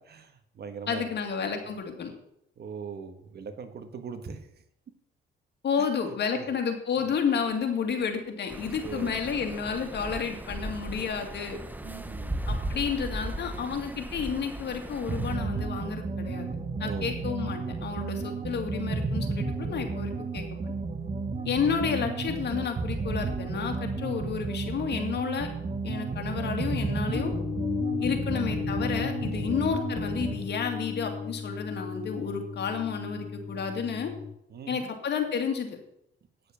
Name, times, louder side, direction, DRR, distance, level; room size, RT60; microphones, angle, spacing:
voice 1, 0.1-1.1 2.6-4.4 5.8-5.9 6.3-6.5 8.8-9.2 11.8-12.4 16.8-17.2 21.5-21.6 28.0-28.4 29.2-29.6 34.5-34.9, right 6 dB, 55° right, 9 dB, 1.5 m, -40 dB
voice 2, 0.9-2.1 5.6-11.6 12.5-16.5 16.8-20.7 21.4-25.5 25.8-27.3 28.0-34.1 34.7-35.8, left 6 dB, 60° left, 4 dB, 2.3 m, -31 dB
sound 1, 8.5-15.4, right 1 dB, 10° right, 0.9 m, -37 dB
sound 2, 15.1-30.4, right 3 dB, 35° right, 1.2 m, -32 dB
sound 3, 27.1-34.3, left 6 dB, 45° left, 3.0 m, -34 dB
9.7 x 6.9 x 7.3 m, 0.78 s
cardioid pair, 90°, 20 cm